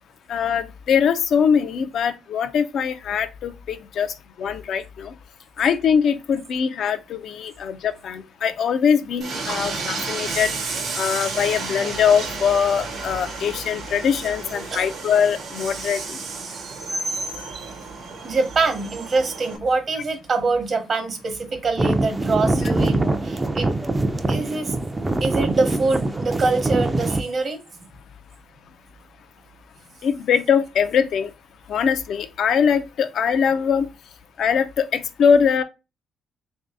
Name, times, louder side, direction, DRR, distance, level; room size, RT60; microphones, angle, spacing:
voice 1, 0.3-5.1 5.6-10.5 10.9-16.2 30.0-31.3 31.7-33.9 34.4-35.6, left 7 dB, 70° left, 0.4 m, -22 dB
Train, 9.2-19.6, right 4 dB, 70° right, 1.0 m, -31 dB
voice 2, 18.2-23.7 24.3-24.7 25.2-27.6, right 3 dB, 45° right, 0.9 m, -24 dB
sound 1, 21.8-27.2, right 2 dB, 20° right, 0.4 m, -23 dB
3.1 x 2.6 x 3.4 m
cardioid pair, 90°, 0 cm